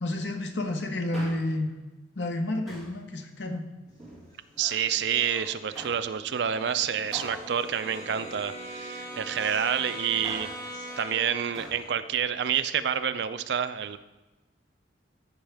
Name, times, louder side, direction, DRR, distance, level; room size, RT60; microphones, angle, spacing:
voice 1, 0.0-1.7 2.2-3.7, left 1 dB, 70° left, 4 dB, 0.9 m, -30 dB
Male speech man speaking, 0.9-1.7 2.7-3.0 3.9-4.7 5.7-6.1 7.1-8.8 10.0-10.7 11.5-11.9 12.2-12.3, right 1 dB, ahead, 2.3 m, -44 dB
sound 1, 4.0-4.1 4.3-11.9, equal, 20° left, 2.0 m, -48 dB
voice 2, 4.6-10.5 11.0-14.0, right 8 dB, 65° right, 12 dB, 0.4 m, -28 dB
Brass instrument, 6.0-11.5, right 1 dB, 35° right, 1.5 m, -41 dB
14.0 x 5.6 x 3.4 m, 1.1 s
head